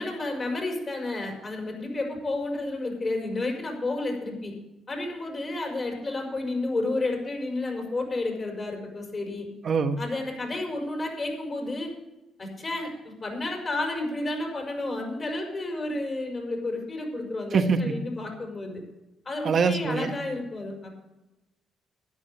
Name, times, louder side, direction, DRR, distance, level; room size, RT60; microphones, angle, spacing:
voice 1, 0.0-4.5 4.9-9.5 10.0-11.9 12.4-18.8 19.3-20.9, left 2 dB, 35° left, 1 dB, 5.2 m, -31 dB
voice 2, 9.6-10.0 17.5-18.0 19.4-20.1, right 5 dB, 50° right, 8 dB, 1.3 m, -23 dB
12.5 x 10.0 x 6.8 m, 1.0 s
cardioid pair, 90°, 0 cm